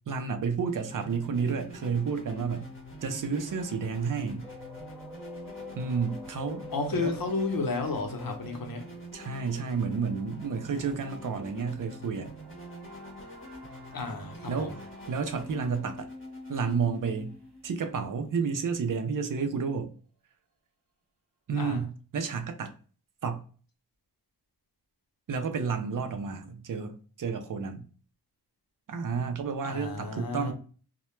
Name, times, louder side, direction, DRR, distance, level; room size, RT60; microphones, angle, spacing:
voice 1, 0.1-2.7 3.0-4.5 5.8-6.6 6.9-7.1 9.1-12.3 14.5-14.7 15.1-16.1 16.5-17.3 17.6-19.9 21.5-22.7 23.2-23.4 25.3-27.8 28.9-30.5, right 5 dB, 55° right, 0.5 m, -31 dB
sound 1, 0.6-18.3, equal, 30° left, 0.9 m, -46 dB
sound 2, 4.4-10.2, left 3 dB, 5° right, 0.6 m, -46 dB
voice 2, 6.7-8.9 13.9-14.7 21.6-21.8 29.6-30.5, left 3 dB, 60° left, 0.7 m, -32 dB
sound 3, 9.0-18.8, right 2 dB, 85° right, 0.7 m, -55 dB
2.1 x 2.0 x 3.0 m
wide cardioid pair, 70°, 40 cm